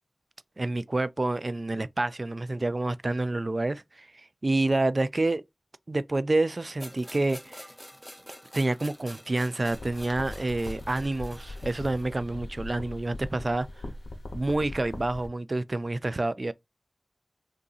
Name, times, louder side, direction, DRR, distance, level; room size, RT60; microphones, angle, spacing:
voice 1, 0.6-4.1 4.4-5.4 5.9-7.7 8.5-13.7 14.3-16.5, right 2 dB, 45° right, 0.3 m, -28 dB
sound 1, 6.8-12.2, equal, 5° left, 0.6 m, -47 dB
sound 2, 9.7-15.3, left 2 dB, 90° left, 0.7 m, -40 dB
3.6 x 2.6 x 2.4 m
wide cardioid pair, 60°, 0 cm